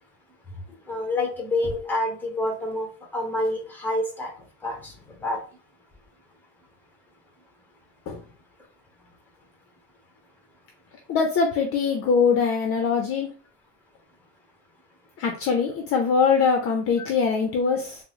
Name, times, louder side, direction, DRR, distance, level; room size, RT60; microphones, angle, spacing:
voice 1, 0.9-2.9 3.1-4.3 4.6-4.9 5.2-5.4, left 1 dB, 5° left, 0 dB, 0.9 m, -27 dB
voice 2, 11.1-13.3 15.2-18.0, left 5 dB, 45° left, 3 dB, 0.5 m, -22 dB
3.6 x 2.0 x 2.9 m, 0.39 s
cardioid pair, 130°, 32 cm